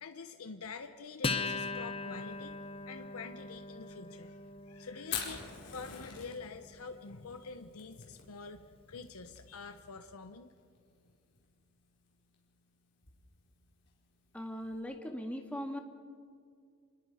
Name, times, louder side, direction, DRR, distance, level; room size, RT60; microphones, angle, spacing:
voice 1, 0.0-2.6 2.9-10.5, left 4 dB, 90° left, 8 dB, 0.9 m, -46 dB
Acoustic guitar, 1.2-8.1, left 3 dB, 25° left, 0.8 m, -41 dB
Fire, 5.0-14.8, left 7 dB, 55° left, 4.4 m, -47 dB
voice 2, 14.3-15.8, equal, 5° left, 2 dB, 1.8 m, -39 dB
27.0 x 21.0 x 4.9 m, 2.2 s
head